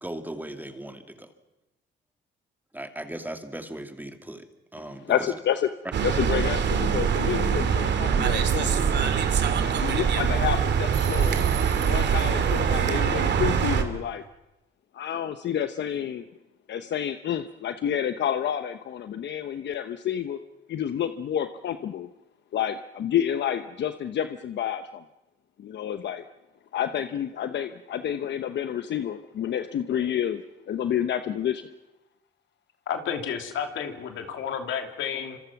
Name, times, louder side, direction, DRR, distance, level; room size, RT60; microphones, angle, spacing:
voice 1, 0.0-1.3 2.7-4.4 4.7-5.0, right 1 dB, 10° right, 6 dB, 2.4 m, -37 dB
voice 2, 4.8-5.7 6.0-8.8 9.6-11.4 11.8-14.2 14.9-16.2 16.7-20.4 20.7-22.1 22.5-24.8 25.6-26.2 26.7-30.4 30.7-31.6, left 9 dB, 65° left, 9 dB, 1.0 m, -29 dB
sound 1, 5.9-13.8, right 7 dB, 60° right, 2.5 m, -23 dB
sound 2, 10.9-12.6, right 10 dB, 85° right, 2.9 m, -41 dB
voice 3, 32.9-35.4, left 7 dB, 80° left, 5 dB, 2.9 m, -31 dB
26.0 x 26.0 x 6.0 m, 1.0 s
cardioid pair, 90°, 20 cm